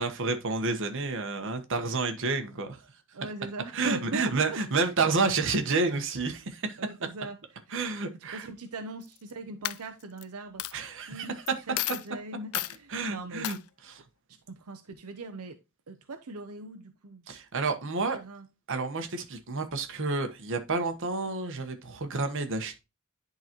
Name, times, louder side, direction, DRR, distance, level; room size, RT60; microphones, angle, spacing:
voice 1, 0.0-2.8 3.7-6.8 7.7-8.5 10.7-11.3 12.9-13.6 13.8-14.0 17.3-18.2 18.7-22.8, right 3 dB, 60° right, 1.2 m, -30 dB
voice 2, 3.1-4.9 6.8-7.4 7.7-7.8 8.1-11.4 11.7-13.5 14.5-15.6 15.9-17.2 17.9-18.5, right 3 dB, 85° right, 0.7 m, -40 dB
Coin (dropping), 9.0-9.3 9.6-10.2 10.6-10.7 11.5-11.6 11.8-12.1 12.5-12.8 13.4-13.6, left 15 dB, 80° left, 0.4 m, -32 dB
10.5 x 4.0 x 2.9 m
head